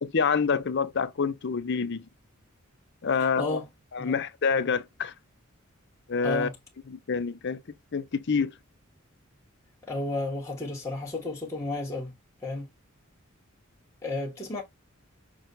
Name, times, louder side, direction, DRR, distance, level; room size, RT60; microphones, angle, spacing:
voice 1, 0.0-2.0 3.0-3.6 3.9-5.1 6.1-6.5 6.9-7.6 7.9-8.5, left 5 dB, 55° left, 0.6 m, -27 dB
voice 2, 3.2-3.6 4.0-4.2 6.2-6.5 9.9-12.1 12.4-12.6 14.0-14.6, left 2 dB, 15° left, 1.2 m, -32 dB
6.0 x 2.2 x 3.9 m
head